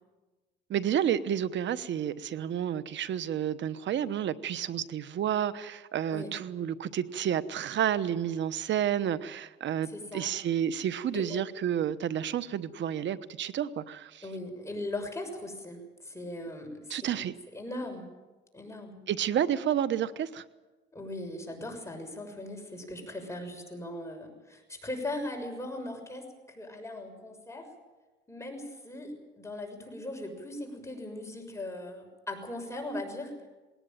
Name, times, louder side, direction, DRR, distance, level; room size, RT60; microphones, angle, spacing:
voice 1, 0.7-14.2 16.9-17.3 19.1-20.4, right 9 dB, 70° right, 15 dB, 1.1 m, -30 dB
voice 2, 9.8-10.3 11.1-11.5 14.2-17.1 17.5-18.1 18.5-19.0 20.9-27.7 28.3-33.3, left 1 dB, 15° left, 3 dB, 6.4 m, -39 dB
20.5 x 18.5 x 9.2 m, 1.2 s
cardioid pair, 90°, 20 cm